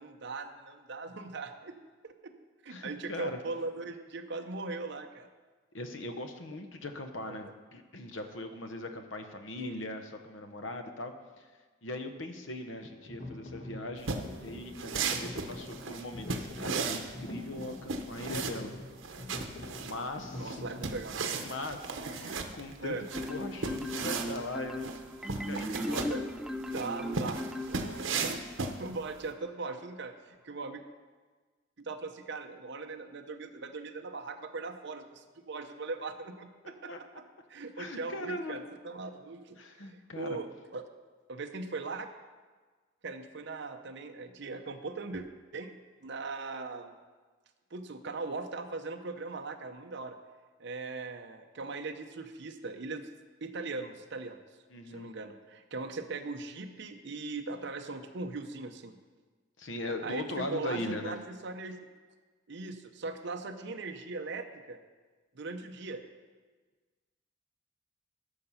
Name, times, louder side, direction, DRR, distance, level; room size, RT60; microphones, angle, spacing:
voice 1, 0.0-1.8 2.0-2.3 2.6-5.3 7.2-7.4 9.6-9.8 20.3-21.2 22.8-23.0 26.1-26.2 26.7-27.4 27.7-28.3 28.6-30.8 31.8-37.2 37.5-40.8 41.3-42.1 43.0-45.2 45.5-46.9 47.7-50.2 50.6-53.1 53.4-54.4 54.9-59.0 60.0-61.8 62.5-64.8 65.3-66.0, right 3 dB, 65° right, 5 dB, 0.7 m, -39 dB
voice 2, 2.7-3.4 5.7-11.5 11.8-14.1 14.4-18.7 19.8-20.6 21.4-21.8 22.1-24.9 25.5-26.1 36.9-37.0 37.8-38.7 39.6-40.4 54.7-55.1 59.6-61.2, left 1 dB, 75° left, 7 dB, 1.0 m, -40 dB
sound 1, 12.8-20.9, left 2 dB, 45° left, 1.5 m, -45 dB
sound 2, 14.0-29.3, right 4 dB, 90° right, 0.9 m, -36 dB
Marimba xylophone, 23.1-28.3, equal, 5° right, 0.3 m, -37 dB
12.0 x 6.7 x 5.7 m, 1.4 s
head